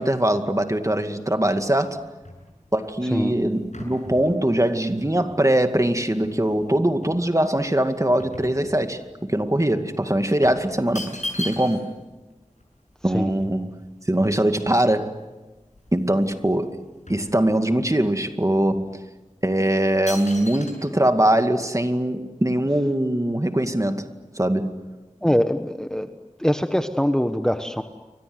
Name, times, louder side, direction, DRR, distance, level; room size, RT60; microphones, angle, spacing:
voice 1, 0.0-2.0 2.7-11.9 13.0-13.8 14.1-15.1 15.9-16.8 17.1-18.9 19.4-24.1 24.4-24.8, right 1 dB, 25° right, 2.2 m, -22 dB
sound 1, 2.2-6.6 7.0-9.2 9.5-9.7 10.4-12.0 12.3-12.4 12.6-14.7 15.3-15.4 15.6-16.4 16.7-17.9 18.5-18.6 19.3-19.5 20.1-20.7, left 2 dB, 70° left, 7.8 m, -39 dB
voice 2, 25.2-26.1 26.4-27.8, equal, 5° left, 1.3 m, -23 dB
29.5 x 24.5 x 8.0 m
wide cardioid pair, 40°, 13 cm